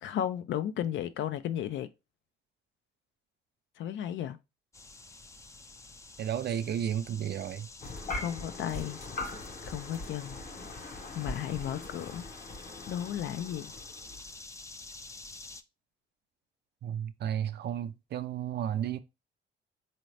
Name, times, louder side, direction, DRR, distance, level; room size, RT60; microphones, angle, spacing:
voice 1, 0.0-1.9 3.8-4.4 8.1-9.0 9.7-10.4 11.1-12.3 12.9-13.7, left 10 dB, 70° left, 0.5 m, -34 dB
sound 1, 4.7-15.6, left 3 dB, 15° left, 0.4 m, -49 dB
voice 2, 6.2-7.7 16.8-19.0, right 10 dB, 55° right, 0.5 m, -33 dB
sound 2, 7.8-14.4, left 2 dB, 40° left, 0.8 m, -41 dB
4.0 x 2.8 x 3.2 m
cardioid pair, 90°, 20 cm